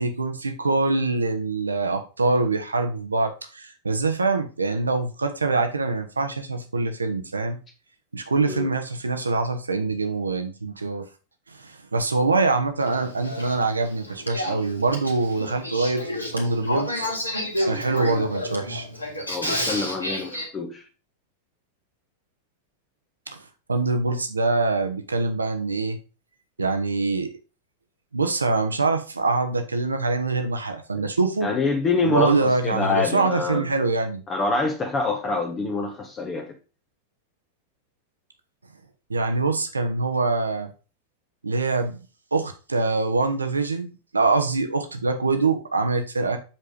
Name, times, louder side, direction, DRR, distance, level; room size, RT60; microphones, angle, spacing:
voice 1, 0.0-7.6 8.1-11.0 11.5-17.0 17.6-18.9 23.3-23.4 23.7-26.0 26.6-27.3 28.1-31.5 32.0-34.2 39.1-40.7 41.4-42.0 42.3-46.4, right 3 dB, 75° right, 1.1 m, -24 dB
Male speech man speaking / Female speech woman speaking / Conversation, 12.8-20.4, left 1 dB, 85° left, 2.1 m, -30 dB
voice 2, 19.3-20.9 30.9-31.1 31.4-33.6 34.3-36.5, left 3 dB, 25° left, 1.2 m, -26 dB
7.4 x 4.8 x 5.2 m
figure-of-eight pair, 90°, 0 cm